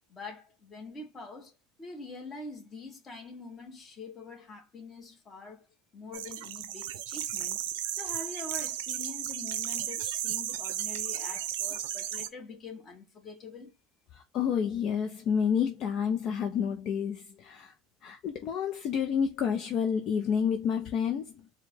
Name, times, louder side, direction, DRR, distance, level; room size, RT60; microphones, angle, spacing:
voice 1, 0.1-5.7 5.9-7.6 7.9-13.8, left 3 dB, 30° left, 1.6 m, -45 dB
sound 1, 6.1-12.3, right 11 dB, 90° right, 0.6 m, -34 dB
voice 2, 14.1-17.7 18.0-21.4, left 7 dB, 50° left, 0.8 m, -29 dB
4.6 x 2.4 x 3.7 m
supercardioid pair, 115°, 0 cm